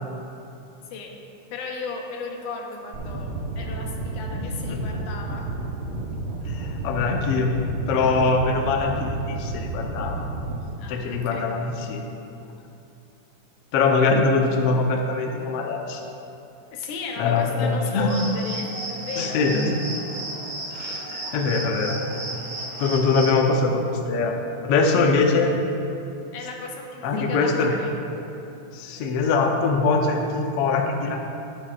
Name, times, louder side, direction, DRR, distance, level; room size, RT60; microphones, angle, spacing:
voice 1, 1.5-5.5 8.0-8.2 10.8-11.5 16.7-19.5 26.3-27.9, left 4 dB, 90° left, 1 dB, 2.5 m, -35 dB
sound 1, 2.9-10.6, right 2 dB, 70° right, 1.1 m, -31 dB
voice 2, 4.4-4.8 6.4-7.5 7.9-10.3 10.9-12.1 13.7-16.0 17.2-18.1 19.2-19.8 20.7-22.0 22.8-24.4 24.6-25.5 27.0-27.7 28.7-31.2, left 4 dB, 70° left, 2 dB, 1.5 m, -23 dB
sound 2, 18.1-23.4, right 2 dB, 50° right, 2.9 m, -34 dB
13.5 x 10.0 x 2.4 m, 2.7 s
omnidirectional pair, 3.5 m